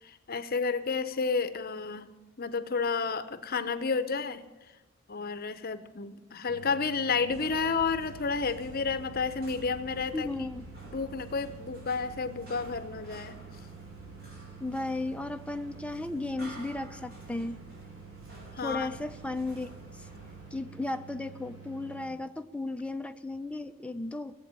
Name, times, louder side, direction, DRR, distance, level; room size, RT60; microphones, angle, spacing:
voice 1, 0.0-2.1 2.4-4.4 5.1-10.3 10.9-13.4 18.5-18.9, left 4 dB, 45° left, 13 dB, 0.8 m, -31 dB
sound 1, 6.5-22.1, right 6 dB, 90° right, 4.0 m, -49 dB
sound 2, 7.3-20.5, equal, 45° right, 6.0 m, -50 dB
voice 2, 10.1-10.7 14.6-17.6 18.6-20.1 20.5-24.3, left 2 dB, 5° left, 8 dB, 0.6 m, -35 dB
16.5 x 8.4 x 9.0 m, 1.1 s
head